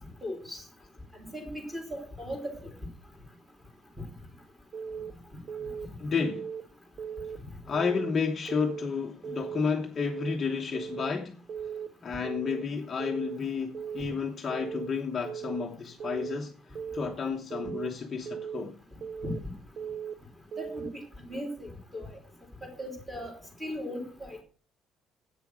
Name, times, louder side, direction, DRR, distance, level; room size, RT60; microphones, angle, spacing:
voice 1, 0.2-0.6 1.1-2.7 19.2-19.4 20.6-21.0 21.3-22.1 22.6-23.3 23.6-24.4, equal, 5° right, 3.2 m, -37 dB
Keyboard (musical) / Alarm, 4.7-5.1 5.5-5.9 6.2-6.6 7.0-7.4 7.7-8.1 8.5-8.9 9.2-9.6 10.0-10.4 10.7-11.1 11.5-11.9 12.2-12.6 13.0-13.4 13.7-14.1 14.5-14.9 15.2-15.6 16.0-16.4 16.7-17.1 17.5-17.9 18.3-18.6 19.0-19.4 19.8-20.1 20.5-20.9, right 7 dB, 40° right, 0.5 m, -37 dB
voice 2, 6.0-6.5 7.7-11.4 12.0-18.8, left 5 dB, 25° left, 1.0 m, -31 dB
11.0 x 8.4 x 6.2 m
cardioid pair, 180°, 0 cm